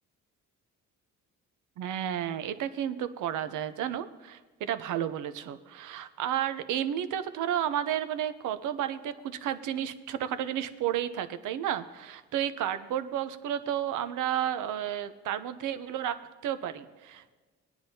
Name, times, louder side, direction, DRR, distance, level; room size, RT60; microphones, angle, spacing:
voice 1, 1.8-16.2 16.4-17.3, right 10 dB, 85° right, 11 dB, 0.7 m, -32 dB
19.0 x 9.7 x 2.8 m, 1.3 s
cardioid pair, 90°, 30 cm